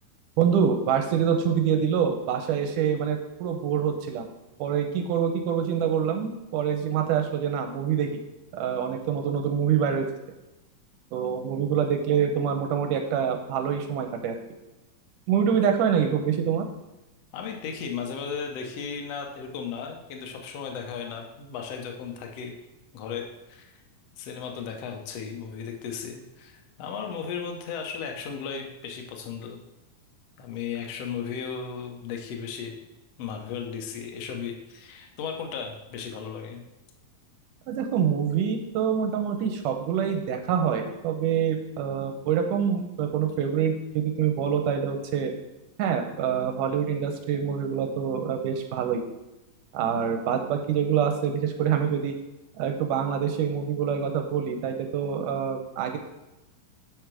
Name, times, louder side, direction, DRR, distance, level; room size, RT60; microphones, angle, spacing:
voice 1, 0.4-4.3 4.6-8.1 8.5-10.1 11.1-14.4 15.3-16.7 37.7-45.3 45.8-49.0 49.7-52.2 52.6-56.0, right 8 dB, 80° right, 5 dB, 1.9 m, -26 dB
voice 2, 17.3-22.5 22.9-23.7 24.2-29.6 30.4-32.7 33.2-36.6, left 6 dB, 85° left, 2 dB, 1.4 m, -35 dB
7.8 x 5.0 x 4.6 m, 1.0 s
omnidirectional pair, 4.1 m